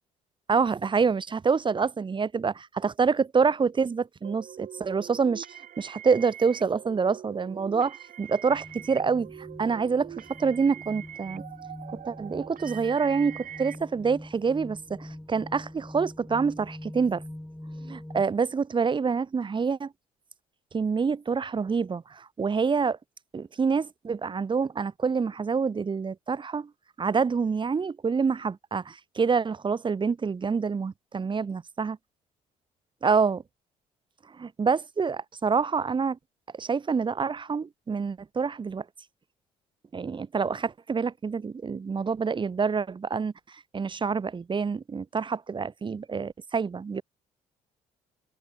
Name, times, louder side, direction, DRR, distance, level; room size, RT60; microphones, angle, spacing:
voice 1, 0.5-5.5 5.8-11.4 12.0-17.2 17.8-19.9 20.7-23.0 23.3-26.7 27.0-32.0 33.0-33.4 34.4-36.2 36.6-38.8 39.9-43.3 43.7-47.0, right 5 dB, 30° right, 0.9 m, -27 dB
sound 1, 4.2-13.8, right 10 dB, 60° right, 2.3 m, -43 dB
sound 2, 8.5-18.2, left 1 dB, 5° left, 1.7 m, -43 dB
hypercardioid pair, 60°, 16 cm